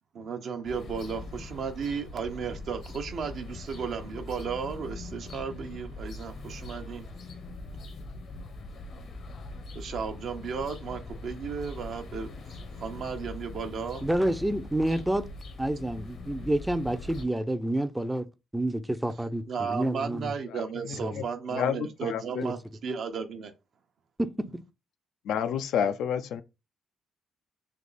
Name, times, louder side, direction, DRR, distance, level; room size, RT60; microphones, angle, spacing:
voice 1, 0.1-7.1 9.7-12.3 12.8-14.0 19.5-23.5, right 6 dB, 65° right, 0.8 m, -34 dB
sound 1, 0.6-17.2, left 2 dB, 65° left, 0.9 m, -42 dB
voice 2, 14.0-15.3 15.6-18.3 18.5-20.3 21.0-21.3 22.4-22.5 24.2-24.5, right 1 dB, 10° right, 0.5 m, -28 dB
voice 3, 20.5-21.2 21.5-22.4 25.3-26.4, left 8 dB, 80° left, 0.4 m, -30 dB
3.4 x 2.9 x 4.0 m
cardioid pair, 90°, 0 cm